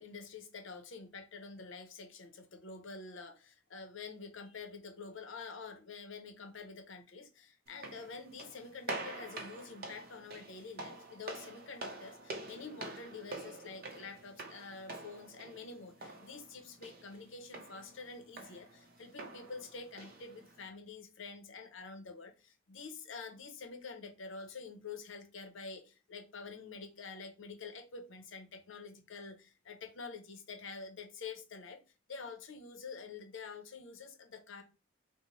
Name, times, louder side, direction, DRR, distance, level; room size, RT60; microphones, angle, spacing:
voice 1, 0.0-31.8 32.1-34.6, left 4 dB, 65° left, 0.6 m, -47 dB
sound 1, 7.7-20.7, right 2 dB, 45° right, 0.7 m, -47 dB
3.0 x 2.1 x 3.9 m
head